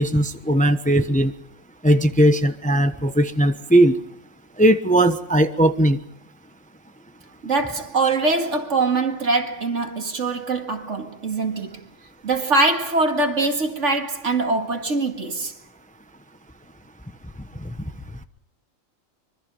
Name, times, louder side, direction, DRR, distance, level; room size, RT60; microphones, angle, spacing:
voice 1, 0.0-1.3 1.8-4.0 4.6-6.0, right 1 dB, 5° left, 1.0 m, -18 dB
voice 2, 7.4-11.9 12.2-15.5, right 3 dB, 65° right, 2.4 m, -23 dB
25.0 x 24.0 x 5.5 m
omnidirectional pair, 1.4 m